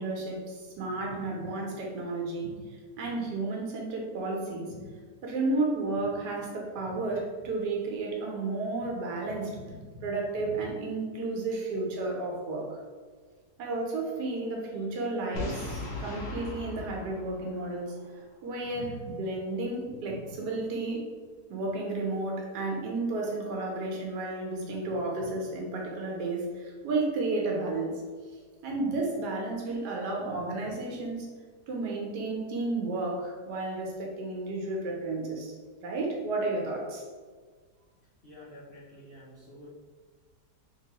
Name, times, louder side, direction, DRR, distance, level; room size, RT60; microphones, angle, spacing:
voice 1, 0.0-2.6 3.0-4.9 5.2-9.8 10.0-12.8 13.6-18.0 18.4-21.0 21.5-27.9 28.6-31.3 31.7-35.5 35.8-37.1, right 2 dB, 90° right, -1 dB, 1.3 m, -32 dB
Boom, 15.4-18.2, left 2 dB, 75° left, 1.2 m, -38 dB
voice 2, 38.2-39.7, left 1 dB, 60° left, -7 dB, 0.6 m, -49 dB
3.3 x 3.0 x 2.8 m, 1.5 s
omnidirectional pair, 1.7 m